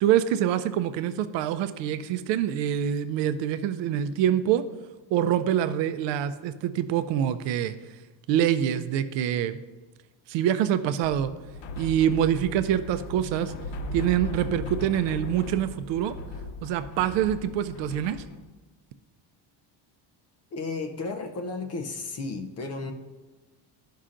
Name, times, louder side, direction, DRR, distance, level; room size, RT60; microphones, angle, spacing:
voice 1, 0.0-4.6 5.1-7.7 8.3-9.6 10.3-11.3 11.8-13.5 13.9-16.1 16.6-18.2, right 10 dB, 75° right, 12 dB, 0.5 m, -25 dB
sound 1, 11.0-18.5, left 2 dB, 85° left, 0.7 m, -38 dB
voice 2, 20.5-22.9, left 3 dB, 35° left, 5 dB, 0.6 m, -33 dB
12.5 x 5.6 x 2.5 m, 1.2 s
cardioid pair, 160°, 44 cm